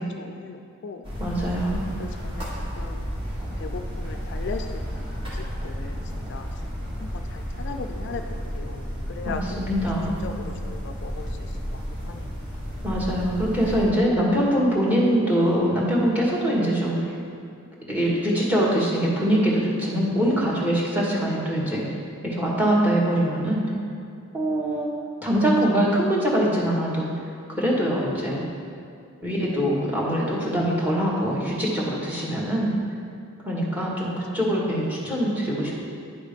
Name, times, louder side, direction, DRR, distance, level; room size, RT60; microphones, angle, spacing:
voice 1, 0.2-1.0 2.0-2.5 2.7-3.1 3.6-6.0 6.3-6.4 7.0-9.4 10.2-12.3 34.1-34.2, left 5 dB, 55° left, 5 dB, 0.3 m, -38 dB
sound 1, 1.0-13.9, equal, 25° right, 1.5 m, -32 dB
voice 2, 1.2-1.8 9.2-10.2 12.8-17.1 17.9-21.8 22.2-23.7 24.3-24.9 25.2-27.1 27.5-28.4 29.2-32.7 33.4-35.7, equal, 5° right, -4 dB, 1.4 m, -23 dB
9.5 x 3.6 x 5.1 m, 2.4 s
head